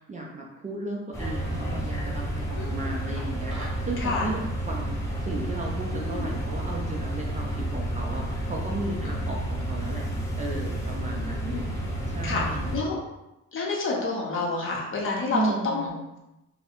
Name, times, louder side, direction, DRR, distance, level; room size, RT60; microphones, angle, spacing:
voice 1, 0.1-10.1 10.4-12.7 15.3-16.0, right 2 dB, 25° right, -2 dB, 0.4 m, -35 dB
sound 1, 1.1-12.8, right 1 dB, 10° left, 0.7 m, -31 dB
voice 2, 2.6-2.9 4.0-4.3 6.0-6.3 9.0-9.3 11.1-11.6 12.2-13.0 13.5-15.9, left 3 dB, 45° left, -2 dB, 0.7 m, -29 dB
sound 2, 3.2-3.9, right 1 dB, 45° right, 0.8 m, -41 dB
2.3 x 2.0 x 2.8 m, 0.94 s
cardioid pair, 90°, 30 cm